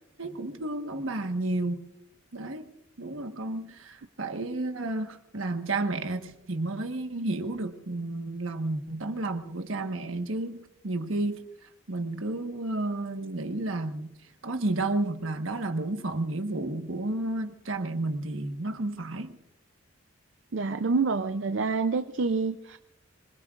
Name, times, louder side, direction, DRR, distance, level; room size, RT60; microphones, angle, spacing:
voice 1, 0.2-1.9 2.3-2.7 3.0-10.6 10.8-11.4 11.9-14.1 14.4-19.4, right 2 dB, 80° right, 1.4 m, -31 dB
voice 2, 20.5-22.8, right 4 dB, 65° right, 0.5 m, -27 dB
25.5 x 22.0 x 2.5 m
head